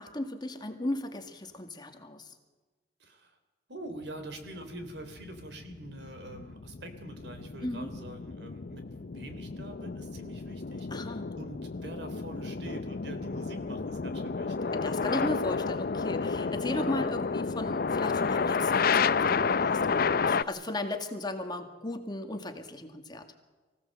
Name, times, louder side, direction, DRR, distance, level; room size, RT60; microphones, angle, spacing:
voice 1, 0.0-2.4 7.6-7.9 10.9-11.3 14.7-23.3, left 1 dB, 25° left, 5 dB, 1.9 m, -36 dB
voice 2, 3.0-3.4 3.7-10.9 11.3-14.7, right 1 dB, 70° right, 7 dB, 3.4 m, -45 dB
sound 1, 4.3-20.4, left 5 dB, 55° left, 0.6 m, -31 dB
24.0 x 16.5 x 7.7 m, 1.3 s
head